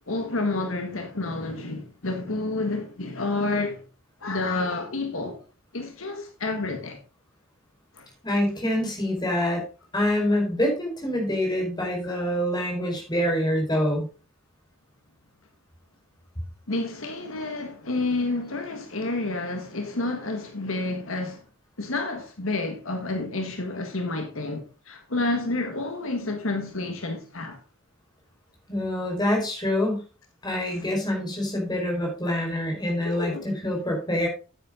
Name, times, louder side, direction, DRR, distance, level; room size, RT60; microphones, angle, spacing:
voice 1, 0.1-3.8 4.2-5.4 5.7-7.0 7.9-8.1 12.0-12.2 16.7-21.4 21.8-27.6 30.7-30.8 33.0-33.5, left 2 dB, 75° left, 1.7 m, -29 dB
voice 2, 8.2-9.6 9.9-14.1 28.7-30.0 30.4-34.3, left 1 dB, 20° left, 4.7 m, -26 dB
10.0 x 9.1 x 3.8 m
head